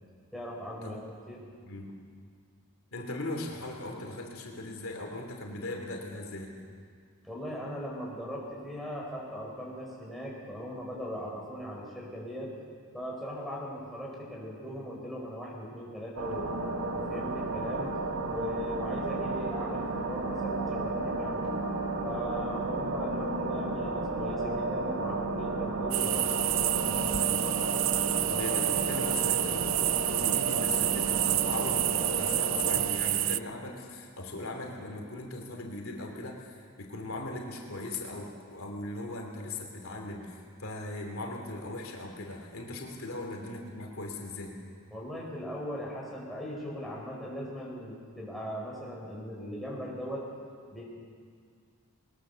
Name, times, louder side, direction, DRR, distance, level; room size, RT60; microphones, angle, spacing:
voice 1, 0.3-1.4 7.2-12.5 12.9-16.5 16.9-21.5 22.0-27.4 44.9-50.3 50.7-50.8, equal, ahead, -4 dB, 5.0 m, -39 dB
voice 2, 2.9-6.6 28.3-44.6, left 2 dB, 70° left, 2 dB, 2.8 m, -39 dB
sound 1, 16.2-32.9, right 2 dB, 85° right, 2.0 m, -32 dB
sound 2, 25.9-33.4, right 16 dB, 60° right, 0.4 m, -29 dB
21.5 x 20.5 x 6.9 m, 2.1 s
head